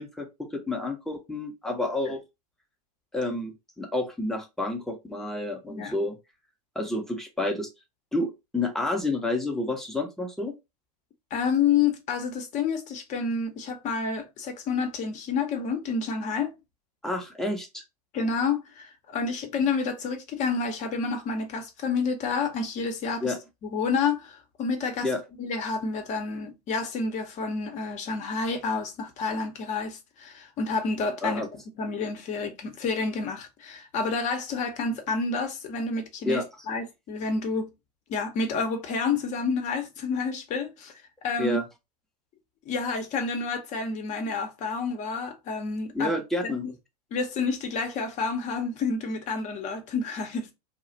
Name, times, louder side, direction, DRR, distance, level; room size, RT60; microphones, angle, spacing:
voice 1, 0.0-2.2 3.1-6.2 6.8-7.7 8.1-10.5 17.0-17.8 23.2-23.4 25.0-25.2 31.2-31.5 36.3-36.5 41.4-41.7 45.9-46.6, left 2 dB, ahead, 0.7 m, -29 dB
voice 2, 11.3-16.5 18.1-23.3 23.7-25.1 25.4-31.4 31.8-37.7 38.1-40.9 41.2-41.6 42.7-46.2 46.4-46.7 47.1-50.5, left 4 dB, 35° left, 0.8 m, -29 dB
2.3 x 2.1 x 3.8 m
hypercardioid pair, 100°, 21 cm